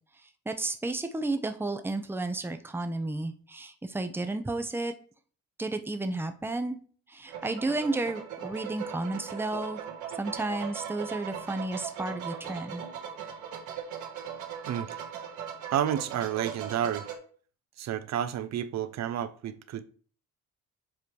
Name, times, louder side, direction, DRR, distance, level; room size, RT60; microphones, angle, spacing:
voice 1, 0.5-4.9 5.6-6.8 7.1-9.8 10.2-12.9, right 2 dB, 5° right, 0.7 m, -32 dB
sound 1, 7.3-17.2, right 8 dB, 80° right, 1.6 m, -39 dB
voice 2, 14.7-15.0 15.7-17.1 17.8-19.8, right 10 dB, 60° right, 0.7 m, -30 dB
7.4 x 3.3 x 4.6 m
cardioid pair, 90°, 30 cm